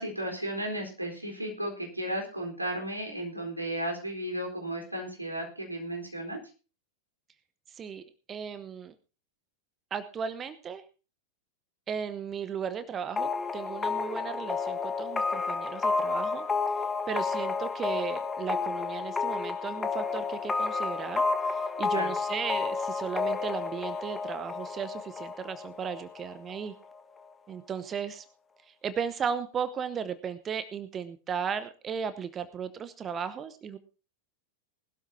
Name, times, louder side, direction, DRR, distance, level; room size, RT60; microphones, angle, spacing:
voice 1, 0.0-6.4 21.9-22.1, right 1 dB, 85° right, 1 dB, 4.1 m, -34 dB
voice 2, 7.7-8.9 9.9-10.8 11.9-16.5 17.1-21.2 21.5-26.7 27.5-28.2 28.6-33.8, right 7 dB, 25° right, 13 dB, 0.9 m, -36 dB
sound 1, 13.2-26.7, left 4 dB, 15° left, 1.3 m, -31 dB
20.0 x 12.0 x 2.8 m, 0.35 s
figure-of-eight pair, 90°, 0 cm